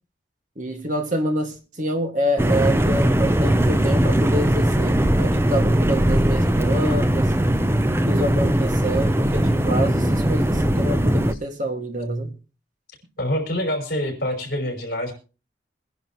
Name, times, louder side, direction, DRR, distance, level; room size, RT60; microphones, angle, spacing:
voice 1, 0.6-7.3 8.1-12.3, equal, 45° right, 4 dB, 2.0 m, -27 dB
sound 1, 2.4-11.3, right 1 dB, 15° right, 0.6 m, -19 dB
voice 2, 13.2-15.1, left 1 dB, 55° left, 2 dB, 5.4 m, -26 dB
23.5 x 10.5 x 3.0 m, 0.34 s
head